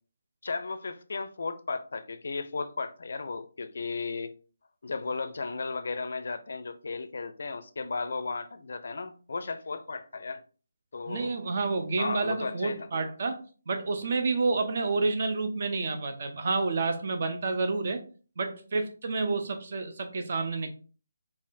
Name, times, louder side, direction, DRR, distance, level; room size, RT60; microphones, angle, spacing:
voice 1, 0.4-4.3 4.8-10.4 10.9-11.4 12.0-12.9, left 4 dB, 50° left, 0.4 m, -35 dB
voice 2, 11.1-13.4 13.7-18.0 18.4-20.7, right 3 dB, 45° right, 0.6 m, -29 dB
4.9 x 2.5 x 2.6 m
figure-of-eight pair, 150°, 0 cm